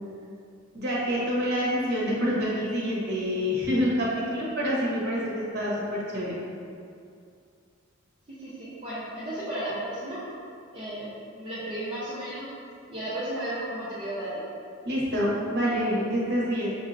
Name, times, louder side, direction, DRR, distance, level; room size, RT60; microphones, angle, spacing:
voice 1, 0.7-6.4 14.8-16.8, equal, 55° right, -6 dB, 1.1 m, -27 dB
voice 2, 8.4-10.2 10.7-11.1 11.3-12.5 12.9-14.4, right 1 dB, 25° right, -12 dB, 0.8 m, -34 dB
6.2 x 2.7 x 2.6 m, 2.4 s
head